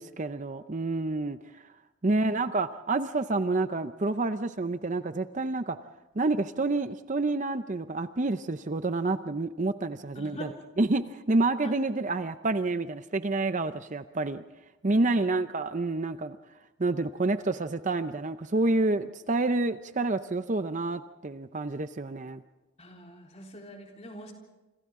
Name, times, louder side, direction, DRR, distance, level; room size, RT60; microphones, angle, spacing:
voice 1, 0.0-1.6 2.0-5.8 6.2-14.4 14.8-16.4 16.8-22.4, right 2 dB, 35° right, 10 dB, 0.6 m, -28 dB
voice 2, 2.1-2.4 10.1-10.5 11.6-11.8 15.0-15.3 22.8-24.3, left 1 dB, 30° left, 0 dB, 3.8 m, -44 dB
28.5 x 26.5 x 3.7 m, 1.1 s
head